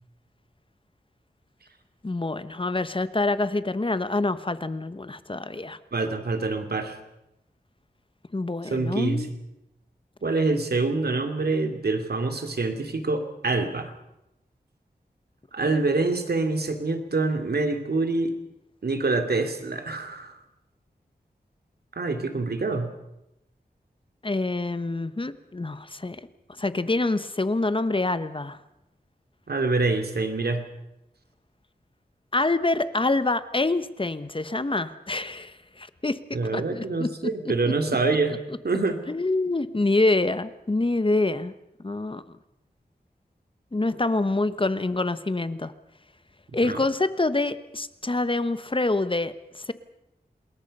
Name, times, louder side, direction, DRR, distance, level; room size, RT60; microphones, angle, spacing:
voice 1, 2.0-5.8 8.3-9.3 24.2-26.2 26.6-28.6 32.3-36.2 36.5-37.1 37.9-38.0 39.1-41.5 41.8-42.2 43.7-45.7 46.5-49.7, left 2 dB, 30° left, 13 dB, 1.1 m, -26 dB
voice 2, 5.9-7.0 8.6-9.4 10.2-13.9 15.5-18.3 18.8-20.4 22.0-22.9 29.5-30.7 36.3-38.4 38.6-39.0 46.6-46.8, right 3 dB, 75° right, 6 dB, 2.8 m, -26 dB
27.5 x 21.5 x 5.5 m, 0.87 s
wide cardioid pair, 80°, 17 cm